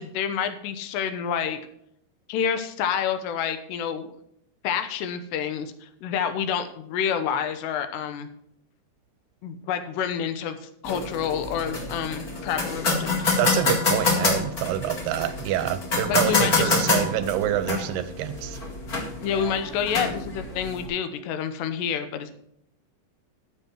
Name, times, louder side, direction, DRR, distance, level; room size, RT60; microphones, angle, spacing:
voice 1, 0.0-1.6 2.3-4.1 4.6-8.3 9.4-10.6 10.8-13.3 16.1-16.7 19.2-22.3, left 8 dB, 85° left, 9 dB, 3.1 m, -28 dB
sound 1, 10.8-20.9, left 3 dB, 35° left, 1.5 m, -27 dB
voice 2, 13.4-18.6, right 12 dB, 80° right, 12 dB, 2.6 m, -27 dB
12.5 x 7.3 x 4.5 m, 0.73 s
omnidirectional pair, 4.9 m